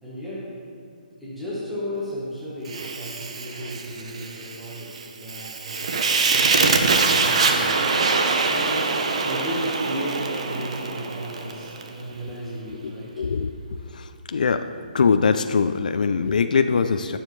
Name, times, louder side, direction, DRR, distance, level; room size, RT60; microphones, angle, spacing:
voice 1, 0.0-0.6 1.2-5.8 6.3-7.8 8.4-9.0 9.2-13.1, equal, ahead, -11 dB, 1.3 m, -34 dB
Fire, 2.7-11.9, right 4 dB, 40° right, 0.8 m, -24 dB
voice 2, 12.8-14.7 14.9-17.2, left 5 dB, 55° left, 9 dB, 0.4 m, -22 dB
21.0 x 7.1 x 3.2 m, 2.3 s
hypercardioid pair, 180°, 5 cm